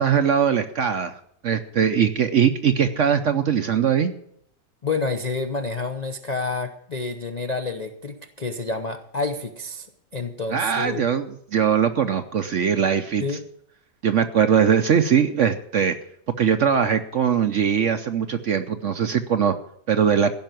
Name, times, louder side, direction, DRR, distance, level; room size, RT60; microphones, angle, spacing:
voice 1, 0.0-4.1 10.5-13.2 14.0-16.0 16.4-19.5 19.9-20.3, right 7 dB, 60° right, 9 dB, 0.8 m, -21 dB
voice 2, 4.8-9.9 10.1-11.1 13.2-13.4, left 3 dB, 50° left, 6 dB, 0.5 m, -29 dB
16.0 x 5.6 x 9.1 m, 0.72 s
omnidirectional pair, 1.9 m